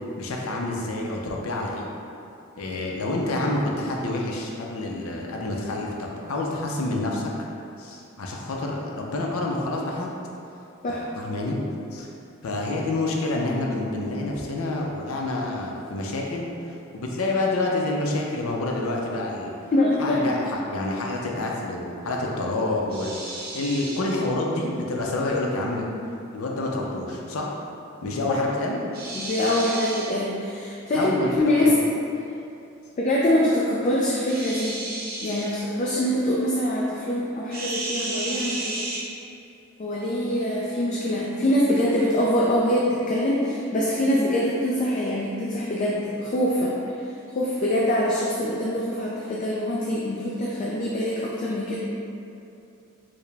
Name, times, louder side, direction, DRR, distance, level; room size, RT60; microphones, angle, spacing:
voice 1, 0.2-1.9 2.6-7.3 7.8-10.1 10.9-11.6 11.9-12.1 12.4-16.5 16.9-19.5 20.0-25.9 26.3-27.5 28.0-28.8 30.9-31.8, left 2 dB, 85° left, -1 dB, 0.5 m, -28 dB
voice 2, 19.7-20.2 29.1-31.7 33.0-34.8 35.2-38.8 39.8-46.8 47.3-51.8, left 1 dB, 35° left, -4 dB, 0.3 m, -24 dB
sound 1, 22.9-24.1 28.9-30.1 34.3-35.5 37.5-39.0, right 2 dB, 45° right, 0.6 m, -32 dB
4.6 x 2.1 x 3.3 m, 2.7 s
head